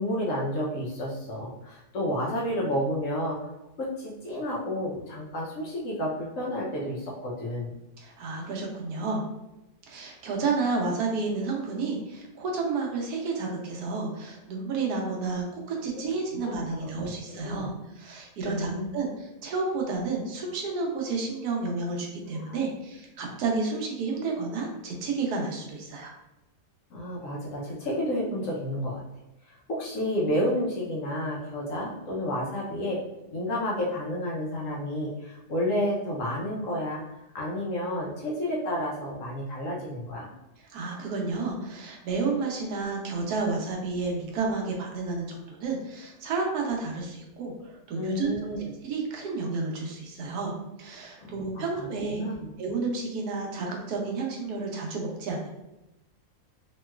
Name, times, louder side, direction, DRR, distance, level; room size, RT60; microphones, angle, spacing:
voice 1, 0.0-3.5 3.8-7.7 16.3-16.5 17.3-17.7 18.4-18.9 22.4-22.6 26.9-29.0 29.5-33.0 33.3-37.0 37.3-40.3 48.0-48.7 51.2-52.5, equal, 65° left, -3 dB, 0.9 m, -31 dB
voice 2, 8.0-9.2 9.9-26.1 40.6-48.3 48.8-52.2 52.6-55.5, right 4 dB, 75° right, 0 dB, 1.1 m, -31 dB
3.0 x 2.9 x 2.2 m, 0.93 s
omnidirectional pair, 1.7 m